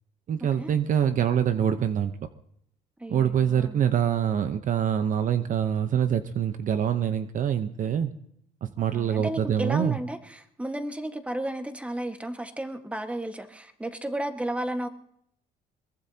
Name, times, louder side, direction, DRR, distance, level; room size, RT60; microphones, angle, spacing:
voice 1, 0.3-2.1 3.1-8.1 8.6-10.0, right 9 dB, 50° right, 9 dB, 0.8 m, -25 dB
voice 2, 3.0-3.8 8.8-14.9, right 1 dB, 5° right, 6 dB, 1.5 m, -33 dB
22.5 x 21.0 x 2.9 m, 0.72 s
cardioid pair, 110°, 17 cm